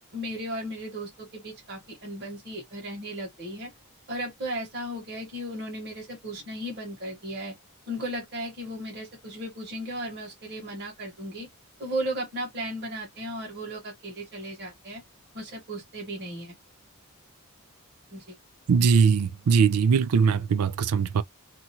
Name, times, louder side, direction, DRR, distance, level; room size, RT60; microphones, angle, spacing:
voice 1, 0.1-3.7 4.1-7.5 7.9-11.5 11.8-15.0 15.3-16.6 18.1-18.4, right 1 dB, 50° right, 1.4 m, -35 dB
voice 2, 18.7-21.2, right 6 dB, 85° right, 0.4 m, -21 dB
2.8 x 2.4 x 2.8 m
head